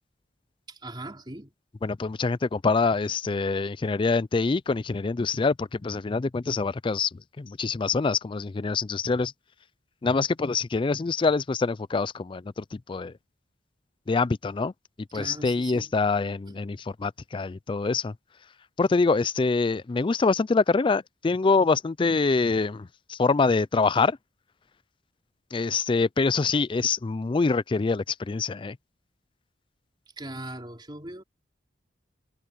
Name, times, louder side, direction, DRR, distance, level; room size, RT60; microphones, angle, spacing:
voice 1, 0.7-1.5 15.1-15.9 16.5-16.6 30.2-31.2, right 1 dB, 25° right, 3.8 m, -39 dB
voice 2, 1.8-9.3 10.0-13.1 14.1-14.7 15.1-18.1 18.8-24.2 25.5-28.8, left 4 dB, 25° left, 0.4 m, -25 dB
head